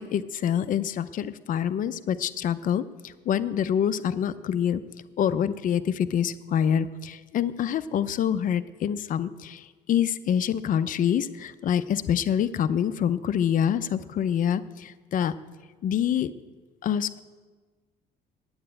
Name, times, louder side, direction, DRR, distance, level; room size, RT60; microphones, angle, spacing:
voice 1, 0.0-4.8 5.2-15.3 15.8-16.3 16.8-17.2, left 9 dB, 50° left, 12 dB, 0.6 m, -26 dB
9.1 x 8.7 x 8.9 m, 1.3 s
cardioid pair, 110°, 17 cm